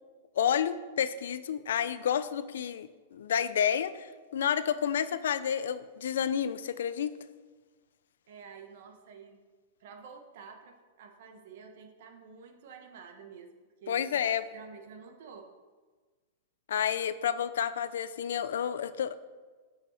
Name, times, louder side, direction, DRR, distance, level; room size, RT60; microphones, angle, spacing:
voice 1, 0.4-7.1 13.9-14.5 16.7-19.2, left 8 dB, 85° left, 14 dB, 0.4 m, -30 dB
voice 2, 8.3-9.4 9.8-13.5 13.8-14.0 14.5-15.4, right 6 dB, 60° right, 5 dB, 1.1 m, -49 dB
7.6 x 5.1 x 4.4 m, 1.4 s
supercardioid pair, 160°, 0 cm